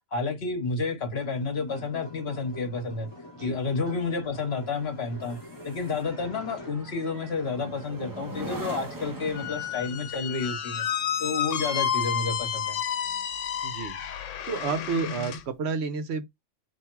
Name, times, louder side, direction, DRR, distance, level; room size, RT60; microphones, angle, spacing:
voice 1, 0.1-3.1 3.4-5.4 5.6-10.9 11.2-12.8, left 4 dB, 60° left, 1.2 m, -30 dB
sound 1, 1.2-6.9, left 1 dB, 25° left, 0.8 m, -45 dB
sound 2, 2.0-13.8 14.2-14.5, right 1 dB, 25° right, 0.5 m, -43 dB
Squeak, 9.3-15.4, left 8 dB, 85° left, 1.0 m, -31 dB
voice 2, 13.6-14.0 14.5-16.3, right 5 dB, 65° right, 0.9 m, -30 dB
3.4 x 2.6 x 4.4 m
omnidirectional pair, 1.2 m